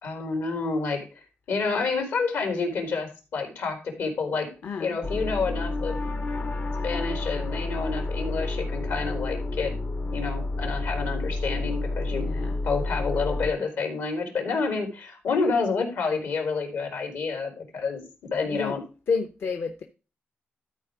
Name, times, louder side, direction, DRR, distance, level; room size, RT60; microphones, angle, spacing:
voice 1, 0.0-1.1 1.5-4.5 4.8-6.0 6.8-9.7 10.1-12.3 12.6-18.0 18.3-18.8, left 4 dB, 80° left, 4 dB, 3.6 m, -29 dB
voice 2, 4.6-5.0 12.1-12.6 18.5-18.8 19.1-19.8, left 5 dB, 60° left, 6 dB, 0.9 m, -30 dB
sound 1, 5.0-13.5, left 2 dB, 35° left, 0.5 m, -30 dB
12.5 x 4.6 x 4.8 m, 0.33 s
cardioid pair, 120°, 4 cm